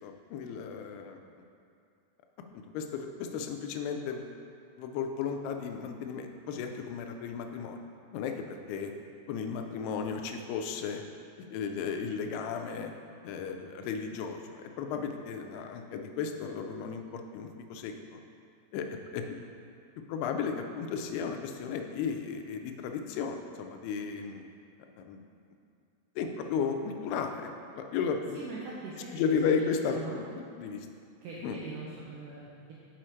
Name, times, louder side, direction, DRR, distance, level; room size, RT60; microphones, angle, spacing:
voice 1, 0.0-1.2 2.5-4.3 4.8-7.8 8.1-8.9 9.3-11.0 11.5-12.9 13.2-18.2 18.7-19.4 20.1-24.5 25.0-25.2 26.2-27.5 27.8-28.4 29.1-30.9 31.4-31.6, left 6 dB, 85° left, 4 dB, 2.5 m, -34 dB
voice 2, 28.4-29.1 29.5-30.2 31.2-32.7, right 4 dB, 90° right, -6 dB, 1.9 m, -42 dB
6.2 x 4.9 x 4.4 m, 2.4 s
omnidirectional pair, 4.7 m